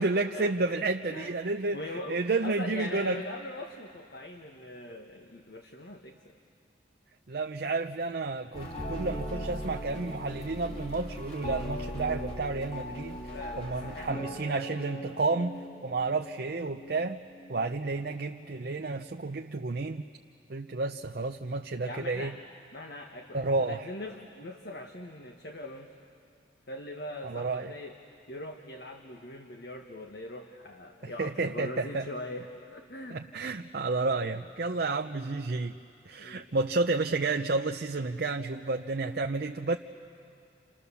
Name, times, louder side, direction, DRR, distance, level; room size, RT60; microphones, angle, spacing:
voice 1, 0.0-1.8 2.1-3.2 7.3-17.2 17.5-20.0 20.5-22.3 23.3-23.9 27.2-27.7 31.0-32.1 33.1-35.8 36.1-39.8, right 3 dB, 60° right, 4 dB, 0.6 m, -31 dB
voice 2, 1.7-6.4 13.2-14.3 21.8-22.4 22.7-25.9 26.7-28.0 28.3-32.5 32.7-33.2 36.2-36.4, left 1 dB, 60° left, 3 dB, 1.5 m, -41 dB
sound 1, 8.5-19.0, equal, 35° left, 2.8 m, -40 dB
29.0 x 28.0 x 7.0 m, 2.5 s
head